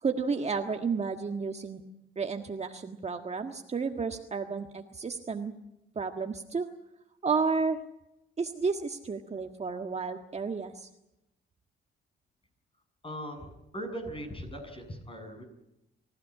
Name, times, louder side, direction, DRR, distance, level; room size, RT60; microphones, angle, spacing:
voice 1, 0.0-1.8 2.2-5.5 6.0-6.7 7.2-7.8 8.4-10.9, right 5 dB, 35° right, 5 dB, 1.6 m, -31 dB
voice 2, 13.0-15.4, equal, 25° left, 5 dB, 7.6 m, -39 dB
24.5 x 15.5 x 9.9 m, 0.88 s
cardioid pair, 90°, 20 cm